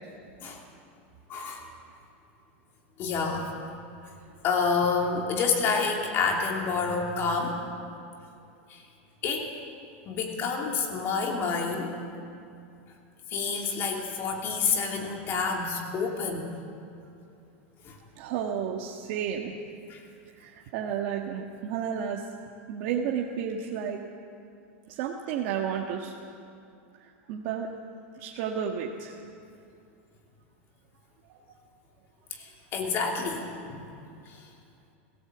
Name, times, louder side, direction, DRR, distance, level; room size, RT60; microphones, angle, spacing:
voice 1, 1.3-1.6 3.0-3.5 4.4-7.6 8.7-8.8 9.2-9.5 10.1-11.9 13.3-16.5 17.8-18.0 19.9-20.0 32.3-33.8 34.3-34.4, left 5 dB, 35° left, 1 dB, 2.9 m, -28 dB
voice 2, 18.2-19.5 20.3-22.2 22.7-24.0 24.9-26.2 26.9-27.7 28.2-29.2 31.3-31.4, right 8 dB, 55° right, 0 dB, 1.5 m, -32 dB
21.5 x 16.5 x 8.0 m, 2.5 s
supercardioid pair, 150°, 7 cm